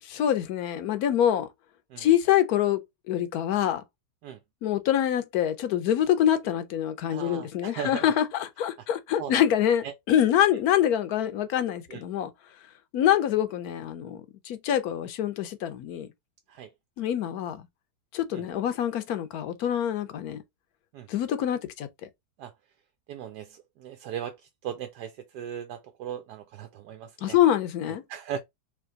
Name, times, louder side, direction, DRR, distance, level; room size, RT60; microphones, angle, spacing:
voice 1, 0.0-1.5 2.0-2.8 3.1-3.8 4.6-12.3 12.9-16.1 17.0-17.6 18.1-20.4 21.1-21.9 27.2-28.0, left 10 dB, 70° left, 1.1 m, -25 dB
voice 2, 7.1-8.0 9.2-9.4 9.8-9.9 11.9-12.0 16.5-16.7 18.3-18.4 20.9-21.1 22.4-22.5 23.1-24.4 24.6-27.4 28.1-28.4, right 9 dB, 75° right, 1.2 m, -37 dB
3.5 x 3.2 x 3.8 m
omnidirectional pair, 1.8 m